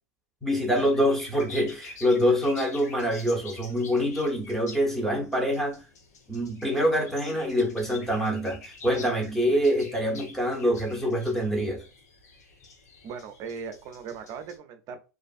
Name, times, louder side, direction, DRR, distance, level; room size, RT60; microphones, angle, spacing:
voice 1, 0.4-5.8 6.3-11.8, equal, 5° left, 0.9 m, -25 dB
sound 1, 0.6-14.6, left 4 dB, 70° left, 0.8 m, -48 dB
voice 2, 13.0-15.1, right 6 dB, 45° right, 0.5 m, -39 dB
2.5 x 2.3 x 2.4 m
hypercardioid pair, 90°, 9 cm